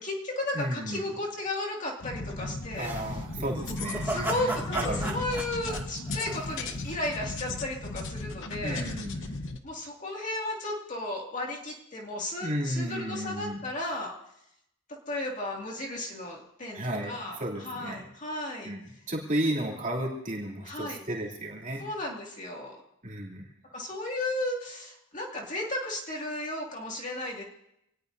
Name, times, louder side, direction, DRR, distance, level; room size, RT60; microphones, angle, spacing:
voice 1, 0.0-3.2 4.0-8.9 9.6-14.1 14.9-18.7 20.6-21.0 21.8-22.8 23.7-27.4, left 1 dB, 35° left, -2 dB, 2.3 m, -34 dB
voice 2, 0.5-1.0 2.8-5.2 8.6-9.3 12.4-13.6 16.7-18.1 18.6-21.9 23.0-23.4, right 1 dB, 35° right, -2 dB, 2.9 m, -33 dB
sound 1, 2.0-9.6, left 2 dB, 60° left, 1.0 m, -36 dB
sound 2, 2.8-6.9, right 1 dB, 10° right, 2.1 m, -36 dB
27.0 x 19.0 x 2.7 m, 0.81 s
head